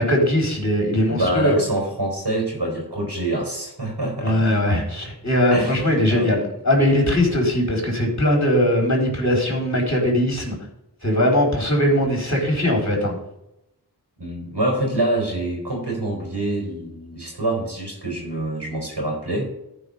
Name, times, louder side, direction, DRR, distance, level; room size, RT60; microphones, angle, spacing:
voice 1, 0.0-1.6 4.2-10.6 11.0-13.1, left 1 dB, 40° left, 0 dB, 3.9 m, -20 dB
voice 2, 1.1-4.5 5.5-5.8 6.1-6.3 14.2-19.4, right 1 dB, 75° right, 0 dB, 3.9 m, -25 dB
14.5 x 5.1 x 5.4 m, 0.84 s
wide cardioid pair, 45°, 40 cm